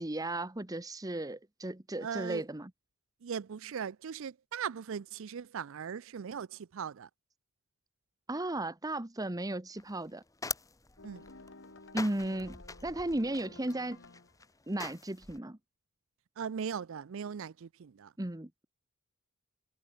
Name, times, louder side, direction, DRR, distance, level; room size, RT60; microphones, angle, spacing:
voice 1, 0.0-2.7 8.3-10.2 11.9-14.0 14.7-15.6 18.2-18.6, right 1 dB, 15° right, 1.0 m, -35 dB
voice 2, 2.0-2.4 3.2-7.1 11.0-11.2 16.4-18.1, right 7 dB, 60° right, 0.4 m, -39 dB
sound 1, 9.8-15.4, left 4 dB, 15° left, 1.2 m, -44 dB
sound 2, 11.0-14.4, left 3 dB, 55° left, 1.8 m, -53 dB
head